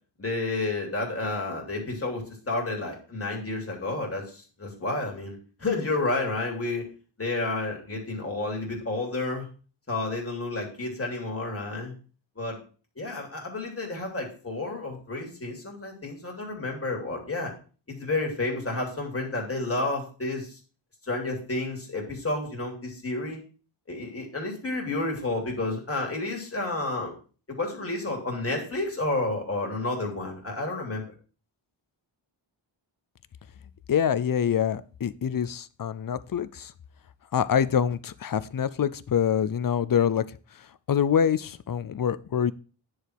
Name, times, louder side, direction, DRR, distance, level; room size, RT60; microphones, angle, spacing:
voice 1, 0.2-6.9 7.2-9.5 9.9-11.9 12.4-12.6 13.0-17.5 17.9-20.6 21.0-23.4 23.9-27.1 27.5-31.1, left 2 dB, 30° left, 0 dB, 3.1 m, -30 dB
voice 2, 33.9-36.7 37.3-40.2 40.9-42.5, left 8 dB, 45° left, 16 dB, 0.6 m, -25 dB
10.0 x 4.9 x 6.0 m, 0.38 s
wide cardioid pair, 125°, 47 cm